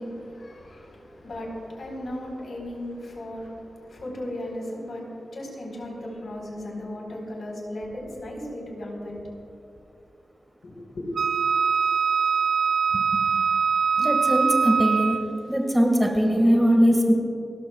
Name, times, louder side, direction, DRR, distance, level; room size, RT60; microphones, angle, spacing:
voice 1, 0.0-9.3 10.6-11.0, left 1 dB, 65° left, -1 dB, 4.0 m, -36 dB
Wind instrument woodwind instrument, 11.2-15.4, right 6 dB, 70° right, 0.4 m, -23 dB
voice 2, 14.0-15.2 15.5-17.1, equal, 5° right, 2 dB, 1.7 m, -20 dB
29.5 x 13.5 x 2.3 m, 2.7 s
wide cardioid pair, 120°, 0 cm